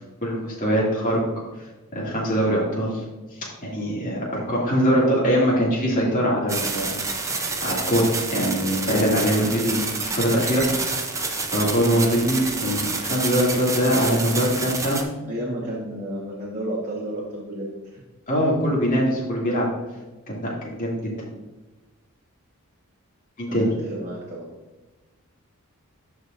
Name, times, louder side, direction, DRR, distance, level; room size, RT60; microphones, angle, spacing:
voice 1, 0.2-1.2 1.9-3.0 3.6-7.3 7.6-11.0 11.2-15.0 18.3-19.7 20.3-21.1 23.4-23.7, equal, 40° left, -5 dB, 2.4 m, -23 dB
sound 1, 6.5-15.0, right 3 dB, 15° right, 0.7 m, -28 dB
voice 2, 15.2-18.0 23.5-24.5, right 1 dB, 35° right, -6 dB, 1.4 m, -32 dB
13.0 x 4.8 x 2.6 m, 1.1 s
head